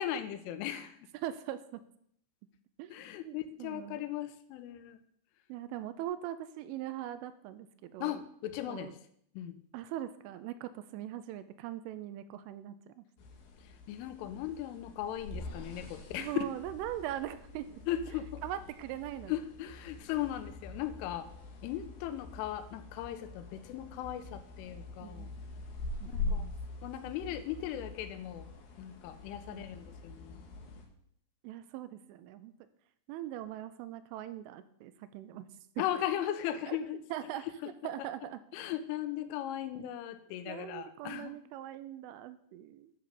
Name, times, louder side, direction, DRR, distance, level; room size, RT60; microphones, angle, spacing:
voice 1, 0.0-1.1 2.9-5.0 8.0-9.0 9.3-9.5 13.6-16.5 17.9-18.4 19.3-21.3 21.6-25.3 26.1-26.5 26.8-28.5 28.8-30.4 35.8-37.0 37.6-37.9 38.5-41.4, left 11 dB, 85° left, 11 dB, 3.2 m, -37 dB
voice 2, 1.2-1.8 2.8-4.1 5.5-8.2 8.7-8.9 9.7-13.0 16.2-17.7 18.4-19.3 25.0-25.3 26.0-26.5 29.5-29.7 31.4-32.5 33.1-35.5 35.8-35.9 36.7-36.8 37.1-37.5 37.8-38.4 40.5-42.9, right 12 dB, 85° right, 12 dB, 3.1 m, -41 dB
sound 1, 13.2-30.9, left 3 dB, 65° left, 3.0 m, -44 dB
10.5 x 6.1 x 6.8 m, 0.69 s
omnidirectional pair, 5.7 m